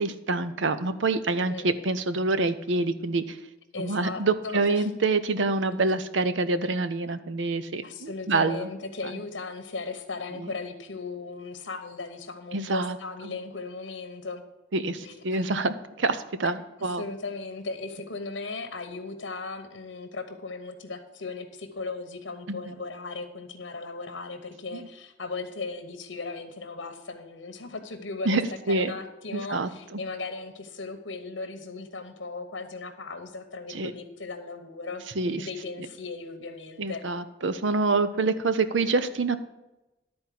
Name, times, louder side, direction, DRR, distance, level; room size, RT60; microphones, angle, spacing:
voice 1, 0.0-3.4 3.8-8.7 10.4-10.5 12.5-13.0 13.2-13.4 14.7-17.0 22.5-22.7 24.7-24.9 28.2-28.4 28.7-28.9 29.3-30.0 33.7-33.9 35.2-35.5 36.8-39.4, right 3 dB, 80° right, 12 dB, 0.7 m, -26 dB
voice 2, 3.7-4.9 7.8-14.4 15.0-15.4 16.8-28.4 28.7-35.0 35.4-37.0, left 3 dB, 80° left, 7 dB, 1.1 m, -37 dB
11.5 x 4.3 x 7.6 m, 1.0 s
head